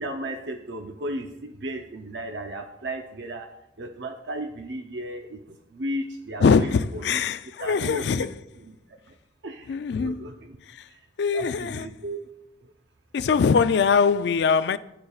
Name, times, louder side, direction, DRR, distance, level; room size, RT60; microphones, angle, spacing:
voice 1, 0.0-3.5 3.8-8.3 8.6-8.8 9.4-10.6 11.3-12.2, right 1 dB, 85° right, 0.6 m, -35 dB
voice 2, 6.4-8.3 9.7-10.2 10.7-10.8 11.2-11.9 13.1-14.8, left 5 dB, 70° left, 0.3 m, -22 dB
13.5 x 5.2 x 2.4 m
head